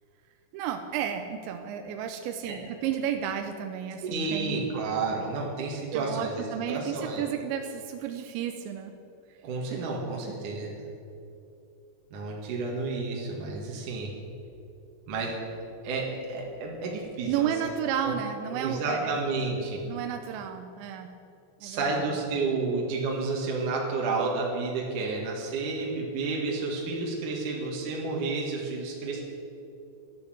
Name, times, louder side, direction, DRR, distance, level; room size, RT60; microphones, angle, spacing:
voice 1, 0.5-4.7 5.9-8.9 17.3-19.2 19.9-21.2 21.6-22.0, right 9 dB, 80° right, 5 dB, 2.9 m, -32 dB
voice 2, 4.0-7.2 9.4-10.8 12.1-14.1 15.1-15.4 15.8-17.5 18.0-18.1 18.5-19.8 21.6-29.2, right 3 dB, 55° right, -2 dB, 2.8 m, -31 dB
13.5 x 12.0 x 7.8 m, 2.7 s
omnidirectional pair, 5.5 m